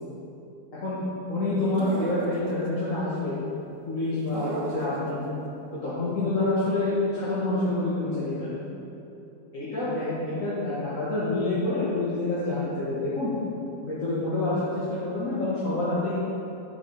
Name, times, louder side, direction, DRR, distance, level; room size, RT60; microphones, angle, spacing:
voice 1, 1.3-3.4 3.9-5.2 5.8-8.5 9.5-13.3 13.8-16.2, left 2 dB, 45° left, -10 dB, 2.6 m, -27 dB
sound 1, 1.8-2.7 4.3-5.3, right 3 dB, 75° right, 1.8 m, -34 dB
10.5 x 8.9 x 5.0 m, 2.9 s
omnidirectional pair, 2.0 m